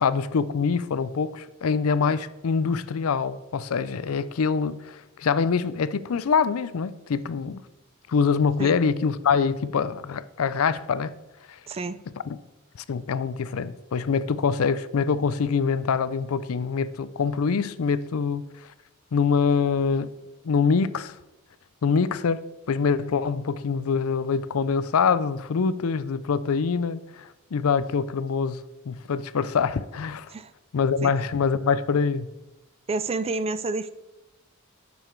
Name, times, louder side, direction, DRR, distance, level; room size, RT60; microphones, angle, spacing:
voice 1, 0.0-7.6 8.1-11.2 11.5-11.6 12.3-12.4 12.9-18.4 19.1-20.1 20.4-21.2 21.8-30.3 30.7-32.3, left 5 dB, 75° left, 0.5 m, -25 dB
voice 2, 11.7-12.0 30.3-30.5 31.0-31.1 32.9-33.9, right 3 dB, 30° right, 0.4 m, -29 dB
9.1 x 7.0 x 4.5 m
head